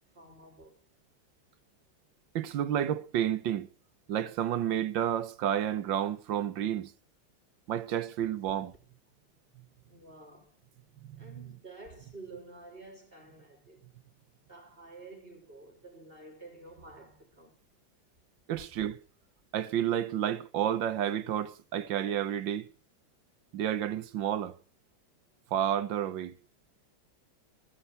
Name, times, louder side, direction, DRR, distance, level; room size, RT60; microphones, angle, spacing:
voice 1, 0.2-0.8 9.9-10.6 11.2-13.8 14.5-17.6, right 2 dB, 30° right, 4.0 m, -50 dB
voice 2, 2.3-3.7 4.1-6.9 7.7-8.7 18.5-19.0 19.5-22.7 23.5-24.6 25.5-26.3, right 10 dB, 75° right, 1.7 m, -30 dB
15.0 x 10.0 x 8.0 m
omnidirectional pair, 2.1 m